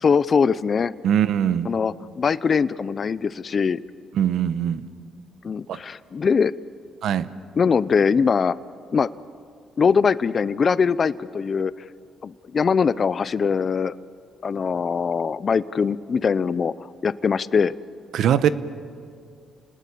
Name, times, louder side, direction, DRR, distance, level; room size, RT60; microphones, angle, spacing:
voice 1, 0.0-0.9 1.6-3.8 5.4-6.5 7.6-8.6 8.9-9.1 9.8-11.7 12.2-14.0 14.4-17.7, left 6 dB, 45° left, 17 dB, 0.6 m, -22 dB
voice 2, 1.0-1.7 4.1-4.8 5.7-5.8 7.0-7.3 18.1-18.5, right 9 dB, 75° right, 14 dB, 1.0 m, -21 dB
30.0 x 19.5 x 8.5 m, 2.2 s
cardioid pair, 90°, 0 cm